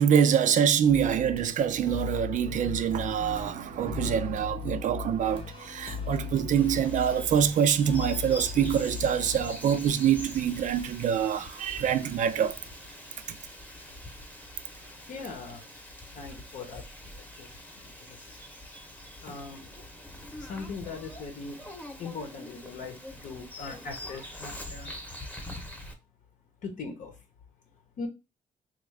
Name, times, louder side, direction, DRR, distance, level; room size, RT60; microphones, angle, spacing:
voice 1, 0.0-12.6, right 8 dB, 65° right, 0.4 m, -25 dB
sound 1, 0.8-9.9, left 6 dB, 40° left, 0.8 m, -38 dB
Bird vocalization bird call bird song, 6.6-25.9, left 1 dB, 10° left, 0.8 m, -44 dB
voice 2, 15.1-15.7 16.1-18.4 19.2-19.7 20.4-21.6 22.0-24.9 26.6-27.2 28.0-28.1, left 4 dB, 70° left, 0.8 m, -40 dB
3.5 x 2.4 x 3.2 m
cardioid pair, 110°, 14 cm